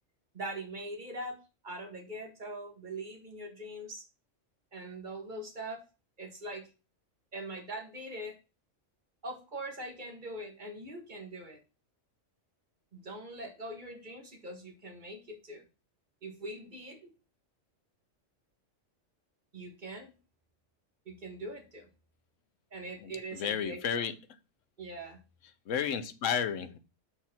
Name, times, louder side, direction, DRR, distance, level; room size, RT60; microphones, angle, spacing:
voice 1, 0.3-4.0 4.7-5.9 6.2-6.7 7.3-8.4 9.2-11.6 12.9-15.6 16.2-17.1 19.5-20.1 21.0-21.9 22.7-24.1 24.8-25.2, right 1 dB, 40° right, 1.7 m, -42 dB
voice 2, 23.0-24.1 25.7-26.8, left 8 dB, 85° left, 1.2 m, -32 dB
6.4 x 4.5 x 5.9 m
omnidirectional pair, 1.2 m